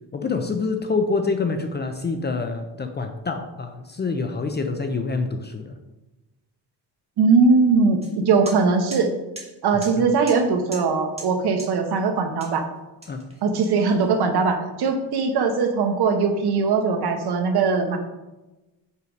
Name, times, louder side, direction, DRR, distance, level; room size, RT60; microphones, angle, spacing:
voice 1, 0.1-5.8 9.7-10.1 13.1-13.2, left 4 dB, 25° left, 6 dB, 0.5 m, -26 dB
voice 2, 7.2-9.1 9.6-12.7 13.4-18.0, right 4 dB, 60° right, 6 dB, 1.0 m, -20 dB
sound 1, 8.0-8.1 8.5-8.6 8.9-9.0 9.4-9.5 9.8-9.9 10.3-10.4 10.7-10.9 11.2-11.3 11.6-11.7 12.4-12.6 13.0-14.0, right 2 dB, 15° right, 1.6 m, -38 dB
5.6 x 4.7 x 5.2 m, 1.1 s
cardioid pair, 140°, 44 cm